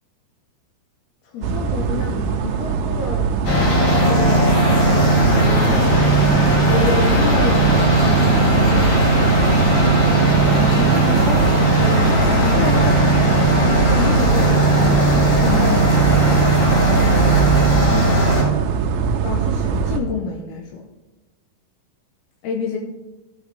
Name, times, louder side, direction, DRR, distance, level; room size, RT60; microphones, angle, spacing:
voice 1, 1.2-3.4 4.0-4.5 4.8-6.3 6.7-8.9 10.5-16.0 19.2-20.9 22.4-22.8, left 5 dB, 80° left, 2 dB, 2.3 m, -28 dB
sound 1, 1.4-20.0, right 7 dB, 85° right, 3.0 m, -22 dB
sound 2, 3.4-18.4, right 1 dB, 50° left, 1.9 m, -17 dB
14.5 x 7.6 x 3.4 m, 1.1 s
omnidirectional pair, 5.5 m